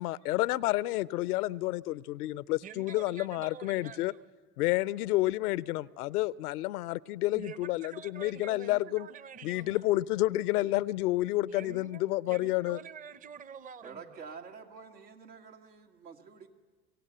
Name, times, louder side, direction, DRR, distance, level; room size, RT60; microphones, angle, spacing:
voice 1, 0.0-4.1 4.6-9.1 9.4-12.8, left 17 dB, 70° left, 0.6 m, -30 dB
voice 2, 2.6-4.2 7.3-9.8 11.5-14.0, right 7 dB, 15° right, 0.6 m, -47 dB
voice 3, 13.8-16.5, right 5 dB, 85° right, 2.0 m, -48 dB
24.5 x 16.5 x 7.8 m
hypercardioid pair, 75°, 47 cm